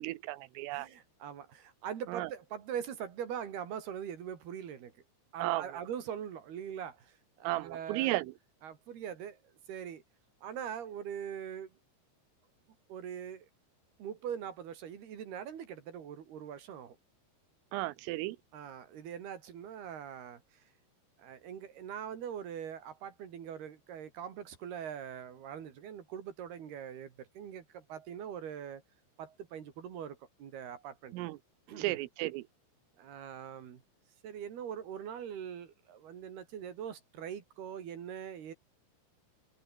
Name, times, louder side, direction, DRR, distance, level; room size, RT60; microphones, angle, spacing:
voice 1, 0.0-0.9 2.1-2.3 5.4-5.8 7.5-8.3 17.7-18.4 31.1-31.4 31.8-32.5, right 18 dB, 85° right, 3.6 m, -34 dB
voice 2, 0.7-4.9 5.3-8.2 8.6-9.4 9.7-10.0 10.4-11.7 12.9-13.5 14.0-17.0 18.5-20.4 21.2-28.8 29.2-31.3 31.7-31.9 33.0-33.8 34.2-38.5, right 8 dB, 55° right, 4.4 m, -42 dB
omnidirectional pair, 5.8 m